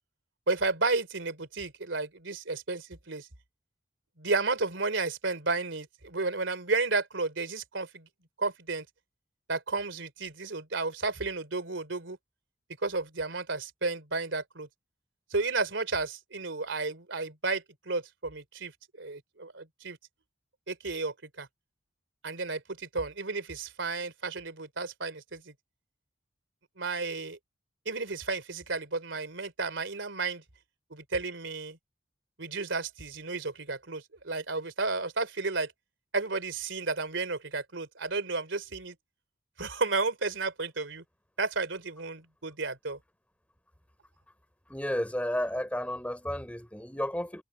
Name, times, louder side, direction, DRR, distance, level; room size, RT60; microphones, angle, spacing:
voice 1, 0.5-3.3 4.2-8.1 8.4-8.8 9.5-12.2 12.8-14.7 15.3-20.0 20.7-21.5 22.2-25.5 26.8-27.4 27.8-30.4 30.9-31.8 32.4-35.7 36.1-38.9 39.6-41.0 41.4-43.0, right 3 dB, 90° right, 3.1 m, -32 dB
voice 2, 44.7-47.4, equal, 5° left, 4.2 m, -32 dB
head